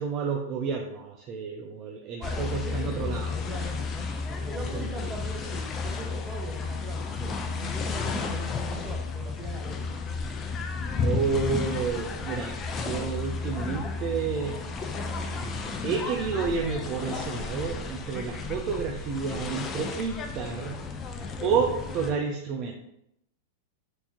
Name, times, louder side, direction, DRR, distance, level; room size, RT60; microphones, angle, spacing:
voice 1, 0.0-3.4 4.7-4.8 11.0-14.5 15.8-20.8 21.4-22.8, right 5 dB, 35° right, 2 dB, 0.4 m, -30 dB
sound 1, 2.2-22.1, left 4 dB, 25° left, 0.4 m, -33 dB
voice 2, 2.2-3.7 4.5-10.0, right 2 dB, 20° right, 1 dB, 0.8 m, -40 dB
4.4 x 2.8 x 2.8 m, 0.79 s
hypercardioid pair, 135°, 0 cm